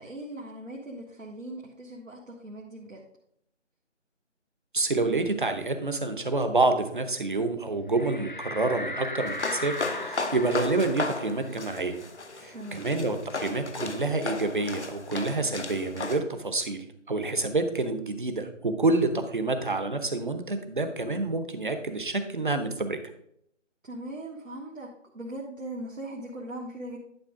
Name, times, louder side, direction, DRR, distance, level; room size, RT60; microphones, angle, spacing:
voice 1, 0.0-3.0 12.5-12.9 23.8-27.0, right 1 dB, 90° right, -3 dB, 1.7 m, -39 dB
voice 2, 4.7-12.0 12.4-23.0, right 3 dB, 40° right, 8 dB, 0.9 m, -28 dB
sound 1, 7.9-13.1 13.5-13.6 13.9-15.6, left 2 dB, 40° left, 0.6 m, -39 dB
sound 2, 9.3-16.2, left 3 dB, 65° left, 1.0 m, -35 dB
10.5 x 5.2 x 3.7 m, 0.73 s
figure-of-eight pair, 165°, 38 cm